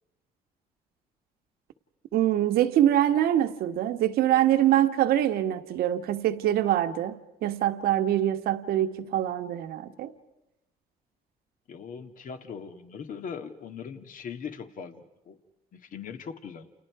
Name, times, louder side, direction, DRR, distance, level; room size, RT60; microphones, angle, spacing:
voice 1, 2.1-10.1, right 12 dB, 75° right, 1.4 m, -24 dB
voice 2, 11.7-15.4 15.7-16.7, left 6 dB, 60° left, 2.0 m, -40 dB
30.0 x 29.0 x 4.8 m
supercardioid pair, 80°, 16 cm